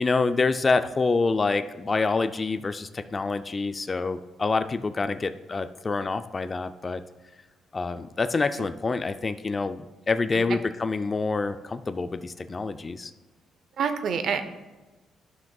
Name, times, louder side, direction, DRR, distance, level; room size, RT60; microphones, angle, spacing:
voice 1, 0.0-7.0 7.7-13.1, left 4 dB, 30° left, 10 dB, 0.4 m, -27 dB
voice 2, 13.8-14.4, right 6 dB, 65° right, 9 dB, 0.7 m, -27 dB
11.5 x 5.9 x 2.3 m, 1.2 s
cardioid pair, 90°, 0 cm